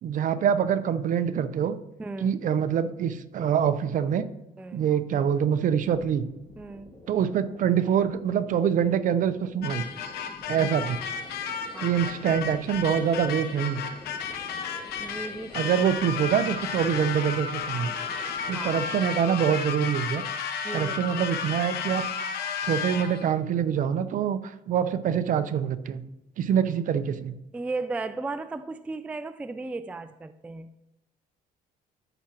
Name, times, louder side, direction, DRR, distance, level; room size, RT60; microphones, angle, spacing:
voice 1, 0.0-1.8 2.2-4.2 4.7-6.3 7.1-9.8 10.5-11.1 11.8-13.8 15.5-17.9 18.5-20.2 20.7-22.0 22.6-26.0 26.4-27.3, right 8 dB, 55° right, 12 dB, 0.6 m, -25 dB
voice 2, 2.0-2.4 4.6-4.9 6.6-6.9 11.7-12.0 14.9-15.7 18.5-18.8 20.6-21.0 27.5-30.8, right 3 dB, 10° right, 11 dB, 0.3 m, -35 dB
sound 1, 6.2-19.0, left 1 dB, 15° left, 1.8 m, -48 dB
sound 2, 9.6-23.3, left 6 dB, 75° left, 0.9 m, -33 dB
13.5 x 5.8 x 2.9 m, 0.92 s
cardioid pair, 110°, 17 cm